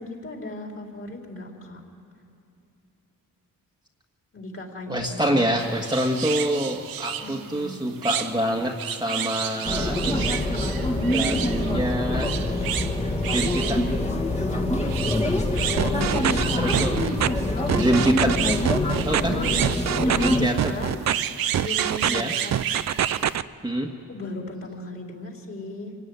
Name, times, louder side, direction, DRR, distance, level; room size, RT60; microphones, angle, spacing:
voice 1, 0.0-1.8 4.3-5.3 7.2-7.9 15.7-16.6 19.3-21.1 21.5-22.6 24.1-26.0, left 2 dB, 40° left, 1 dB, 4.3 m, -36 dB
voice 2, 4.9-10.4 10.7-10.8 11.1-12.3 13.3-13.9 15.8-17.0 17.7-18.4 19.1-19.4 20.2-20.8 22.1-22.3 23.6-23.9, right 1 dB, 10° right, 0 dB, 1.7 m, -26 dB
sound 1, 5.6-23.4, right 10 dB, 85° right, 1.0 m, -32 dB
sound 2, 9.7-20.5, left 1 dB, 20° left, 2.0 m, -25 dB
sound 3, 15.8-16.4 16.7-17.3 17.7-18.4 18.6-19.2 19.6-20.3 20.6-21.1 21.5-22.2 22.5-23.4, right 10 dB, 50° right, 0.6 m, -24 dB
26.0 x 17.5 x 9.6 m, 2.5 s
cardioid pair, 115°, 34 cm